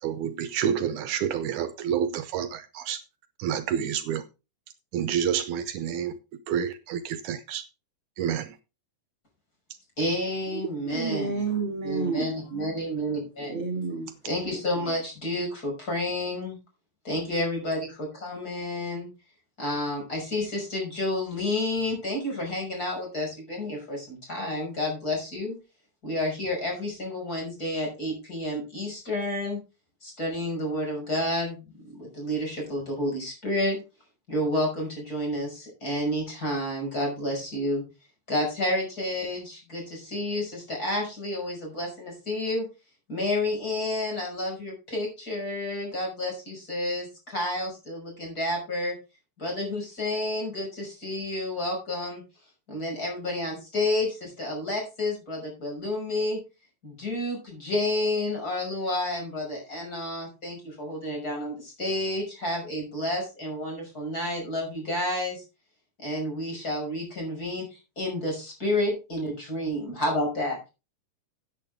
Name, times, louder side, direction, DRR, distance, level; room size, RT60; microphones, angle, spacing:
voice 1, 0.0-3.0 3.4-4.3 4.9-6.2 6.5-7.7 8.2-8.6 10.5-10.6, right 9 dB, 75° right, 2.2 m, -29 dB
voice 2, 10.0-11.4 11.8-13.6 14.2-16.6 17.0-19.1 19.6-25.6 26.0-29.6 30.0-31.7 32.0-33.8 34.3-37.8 38.3-42.7 43.1-49.0 49.4-52.2 52.7-56.4 56.8-65.4 66.0-70.7, left 1 dB, 25° left, 6.3 m, -30 dB
voice 3, 10.9-12.4 13.5-14.1, right 4 dB, 40° right, 2.7 m, -29 dB
14.0 x 8.7 x 3.5 m
omnidirectional pair, 3.6 m